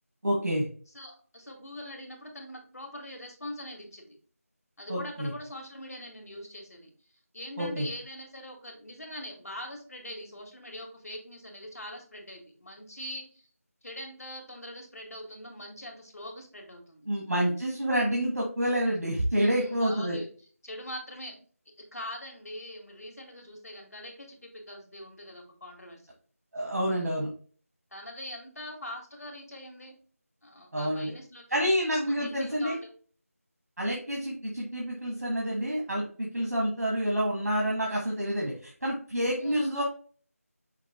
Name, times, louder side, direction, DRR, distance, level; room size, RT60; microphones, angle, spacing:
voice 1, 0.2-0.7 4.9-5.3 7.6-7.9 17.1-20.2 26.5-27.3 30.7-31.1 31.5-32.8 33.8-39.8, equal, 85° right, -3 dB, 1.5 m, -28 dB
voice 2, 0.9-4.1 4.8-6.9 7.3-13.5 13.8-17.1 19.3-20.3 20.6-21.3 21.9-26.0 27.9-29.9 30.4-31.6 32.1-32.9 39.3-39.8, left 1 dB, 75° left, 2 dB, 1.6 m, -42 dB
5.8 x 2.6 x 3.5 m, 0.43 s
figure-of-eight pair, 170°, 8 cm